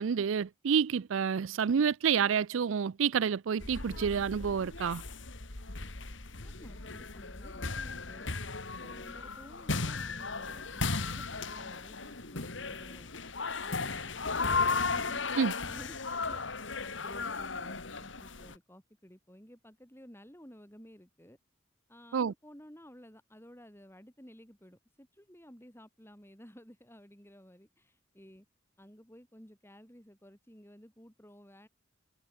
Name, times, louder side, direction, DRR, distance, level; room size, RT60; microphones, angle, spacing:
voice 1, 0.0-5.0 15.4-15.5 22.1-22.3, right 7 dB, 80° right, 0.4 m, -29 dB
sound 1, 3.6-18.6, left 4 dB, 70° left, 2.5 m, -36 dB
voice 2, 6.4-8.3 8.8-13.1 13.6-16.4 16.8-21.4 21.9-28.5 28.8-31.7, equal, 10° left, 6.9 m, -54 dB
head